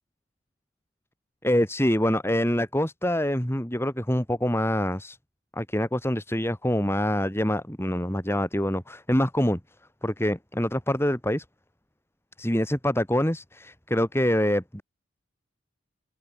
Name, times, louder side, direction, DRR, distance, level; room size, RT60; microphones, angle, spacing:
voice 1, 1.4-5.2 5.5-9.6 10.0-11.4 12.4-14.8, left 1 dB, 15° left, 3.4 m, -25 dB
head